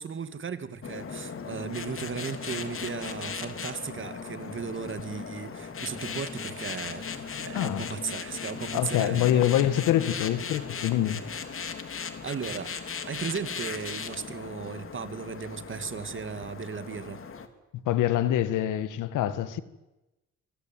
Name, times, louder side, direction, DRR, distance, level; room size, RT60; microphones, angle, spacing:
voice 1, 0.0-9.5 12.2-12.7 13.1-17.2, right 6 dB, 40° right, 2.5 m, -36 dB
sound 1, 0.8-17.5, left 6 dB, 45° left, 3.3 m, -38 dB
voice 2, 7.5-8.0 8.7-11.2 17.9-19.6, left 12 dB, 90° left, 1.9 m, -25 dB
25.5 x 25.0 x 9.3 m
cardioid pair, 90°, 30 cm